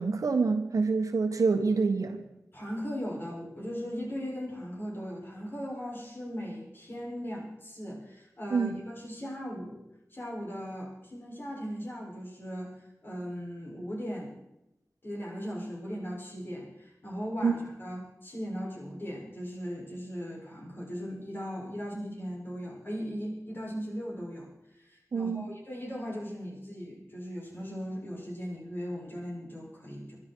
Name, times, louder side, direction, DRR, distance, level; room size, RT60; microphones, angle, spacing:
voice 1, 0.0-2.2 8.5-8.8 17.4-17.5 25.1-25.5, right 4 dB, 80° right, 6 dB, 1.5 m, -26 dB
voice 2, 2.5-9.9 10.1-12.7 13.0-14.4 15.0-24.5 24.8-30.2, equal, 40° left, -3 dB, 6.8 m, -38 dB
23.0 x 12.0 x 4.7 m, 0.89 s
wide cardioid pair, 85°, 6 cm